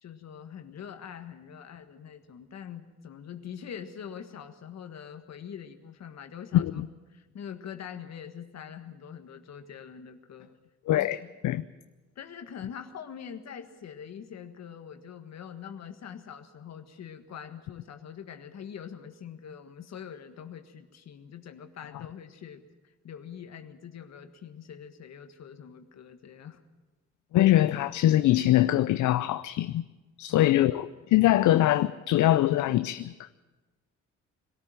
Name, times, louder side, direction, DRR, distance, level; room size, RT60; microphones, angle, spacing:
voice 1, 0.0-6.8 7.1-10.5 10.9-11.3 12.2-26.6 30.3-31.1, left 8 dB, 60° left, 7 dB, 1.7 m, -44 dB
voice 2, 6.5-6.9 10.9-11.6 27.3-29.8 30.2-33.3, left 14 dB, 75° left, 12 dB, 0.6 m, -23 dB
22.0 x 13.5 x 9.1 m, 1.2 s
cardioid pair, 90°, 30 cm